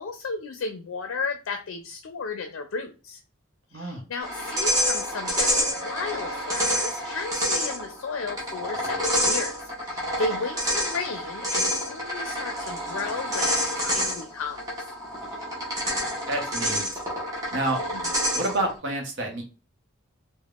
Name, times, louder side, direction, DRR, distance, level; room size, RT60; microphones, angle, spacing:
voice 1, 0.0-3.2 3.7-9.5 9.8-14.6, left 4 dB, 75° left, 5 dB, 0.4 m, -34 dB
voice 2, 3.7-4.0 16.3-17.0 17.5-17.8 18.3-19.4, right 1 dB, 60° right, 2 dB, 0.8 m, -29 dB
sound 1, 4.2-18.7, equal, 20° right, 0.8 m, -28 dB
3.4 x 2.1 x 2.3 m, 0.32 s
head